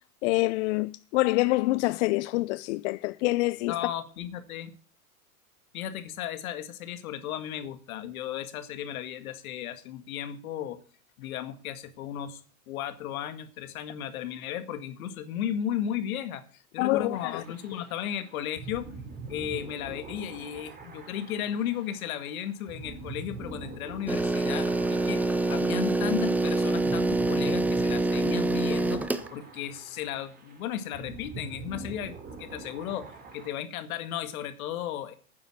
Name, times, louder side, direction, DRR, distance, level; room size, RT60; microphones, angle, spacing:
voice 1, 0.2-3.7 16.8-17.4, left 21 dB, 55° left, 0.5 m, -26 dB
voice 2, 3.7-4.7 5.7-10.8 11.2-12.4 12.7-18.9 19.3-29.0 29.3-35.1, left 10 dB, 70° left, 2.0 m, -35 dB
sound 1, 17.1-33.5, right 4 dB, 20° right, 3.1 m, -44 dB
sound 2, 24.1-29.3, right 2 dB, 5° right, 0.7 m, -26 dB
9.6 x 7.3 x 8.7 m
hypercardioid pair, 120°, 44 cm